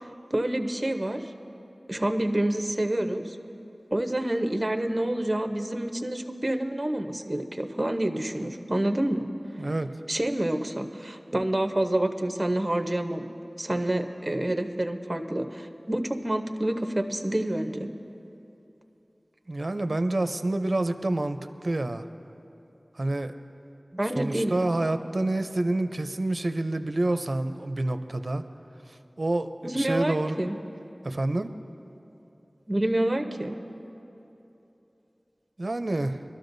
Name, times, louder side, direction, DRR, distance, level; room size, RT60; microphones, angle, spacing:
voice 1, 0.0-1.3 1.9-3.4 3.9-9.3 10.1-13.3 13.6-17.9 23.9-24.6 29.6-30.6 32.7-33.6, right 1 dB, 30° right, 5 dB, 0.8 m, -28 dB
voice 2, 9.6-9.9 19.5-22.0 23.0-23.3 24.1-28.4 29.2-30.4 31.0-31.5 35.6-36.2, right 2 dB, 65° right, 8 dB, 0.5 m, -28 dB
23.0 x 12.5 x 2.6 m, 3.0 s
wide cardioid pair, 55°, 0 cm